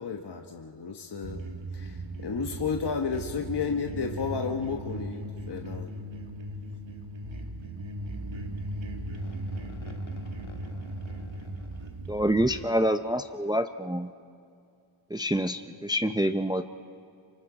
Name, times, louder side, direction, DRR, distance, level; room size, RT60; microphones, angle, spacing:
voice 1, 0.0-1.4 1.7-5.9, left 5 dB, 50° left, 3 dB, 1.1 m, -32 dB
sound 1, 1.2-12.7, right 1 dB, 65° right, 1.8 m, -38 dB
voice 2, 9.2-11.5, left 3 dB, 70° left, 3 dB, 2.3 m, -52 dB
voice 3, 12.1-14.1 15.1-16.6, equal, 10° right, 9 dB, 0.5 m, -26 dB
27.5 x 25.0 x 4.9 m, 2.3 s
wide cardioid pair, 105°, 50 cm